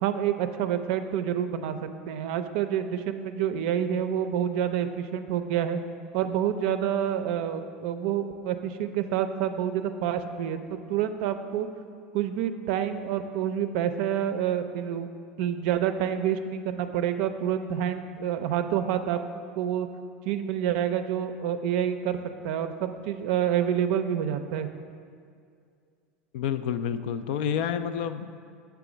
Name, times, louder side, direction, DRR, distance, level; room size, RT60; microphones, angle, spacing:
voice 1, 0.0-1.8 2.1-5.8 6.1-11.7 12.1-15.1 15.4-19.2 19.6-19.9 20.3-22.2 22.4-24.7, right 9 dB, 65° right, 9 dB, 0.4 m, -28 dB
voice 2, 26.3-28.4, left 8 dB, 70° left, 11 dB, 0.3 m, -29 dB
6.8 x 3.4 x 6.0 m, 2.3 s
hypercardioid pair, 90°, 6 cm